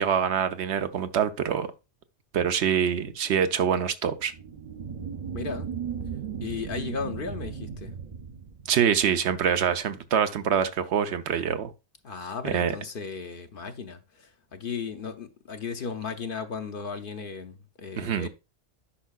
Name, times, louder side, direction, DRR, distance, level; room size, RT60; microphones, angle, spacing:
voice 1, 0.0-1.7 2.3-4.3 8.7-11.7 12.4-12.7 18.0-18.3, right 8 dB, 75° right, 0.9 m, -25 dB
sound 1, 4.3-9.3, right 7 dB, 45° right, 0.6 m, -36 dB
voice 2, 5.3-5.7 6.4-7.9 12.0-18.3, left 5 dB, 55° left, 0.8 m, -35 dB
10.0 x 5.5 x 2.3 m
omnidirectional pair, 1.1 m